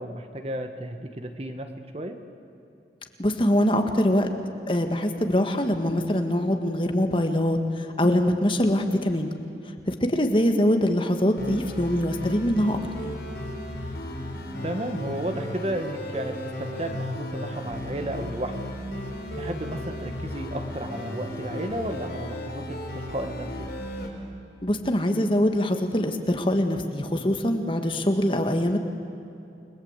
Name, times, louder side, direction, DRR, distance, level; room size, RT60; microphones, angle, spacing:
voice 1, 0.0-1.7 1.9-2.2 14.6-18.5 19.3-23.5, right 1 dB, 35° right, 6 dB, 1.6 m, -33 dB
voice 2, 3.2-4.3 4.7-9.3 9.9-12.8 24.6-28.8, left 1 dB, 30° left, 5 dB, 1.7 m, -23 dB
sound 1, 11.4-24.1, left 1 dB, 75° left, 5.2 m, -35 dB
29.5 x 21.5 x 8.2 m, 2.8 s
head